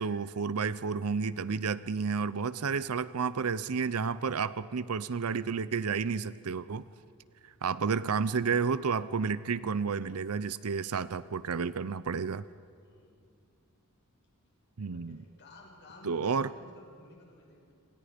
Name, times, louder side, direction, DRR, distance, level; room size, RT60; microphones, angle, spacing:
voice 1, 0.0-6.8 7.6-12.4 14.8-15.2 16.0-16.5, right 5 dB, 75° right, 16 dB, 0.6 m, -31 dB
voice 2, 12.8-13.1 14.8-17.7, left 2 dB, 50° left, 0 dB, 6.1 m, -54 dB
27.5 x 27.0 x 5.2 m, 2.4 s
head